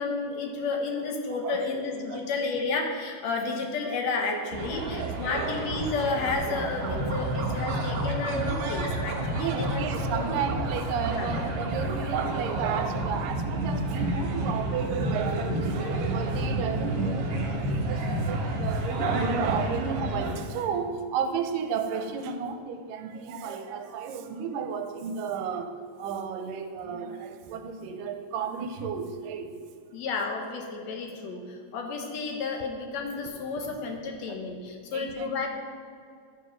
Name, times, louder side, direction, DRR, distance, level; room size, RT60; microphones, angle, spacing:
voice 1, 0.0-9.8 10.1-10.2 11.0-11.3 29.9-35.5, left 4 dB, 70° left, 2 dB, 1.8 m, -31 dB
voice 2, 4.3-5.5 6.9-7.0 9.4-29.5 33.6-33.7 34.9-35.5, right 6 dB, 85° right, 7 dB, 2.2 m, -33 dB
sound 1, 4.5-20.4, right 1 dB, 65° right, 1.5 m, -30 dB
12.0 x 4.9 x 5.1 m, 2.3 s
omnidirectional pair, 3.9 m